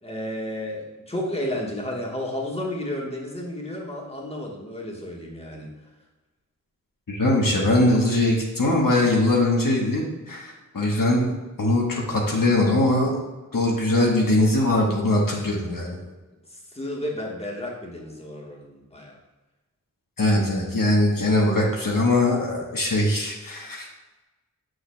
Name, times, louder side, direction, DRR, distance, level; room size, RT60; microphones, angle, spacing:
voice 1, 0.0-5.7 16.5-19.2, left 1 dB, 20° left, -2 dB, 1.3 m, -32 dB
voice 2, 7.1-13.2 13.5-16.0 20.2-23.9, left 1 dB, 75° left, -2 dB, 1.1 m, -21 dB
6.7 x 6.4 x 2.2 m, 1.2 s
wide cardioid pair, 45°, 34 cm